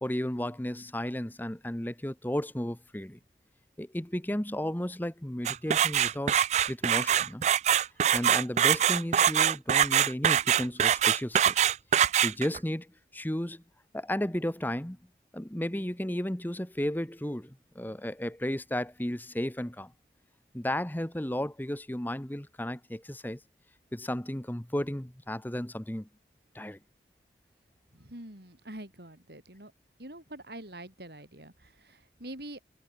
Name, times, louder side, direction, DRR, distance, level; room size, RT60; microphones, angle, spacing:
voice 1, 0.0-3.2 3.8-6.4 6.7-7.4 8.1-11.7 12.2-12.9 13.1-13.6 13.9-15.0 15.3-19.9 20.5-23.4 23.9-26.1 26.5-26.8, left 1 dB, 10° left, 1.0 m, -33 dB
sound 1, 5.5-12.6, right 9 dB, 40° right, 0.3 m, -24 dB
voice 2, 27.9-29.7 30.0-32.6, right 1 dB, 65° right, 6.9 m, -45 dB
head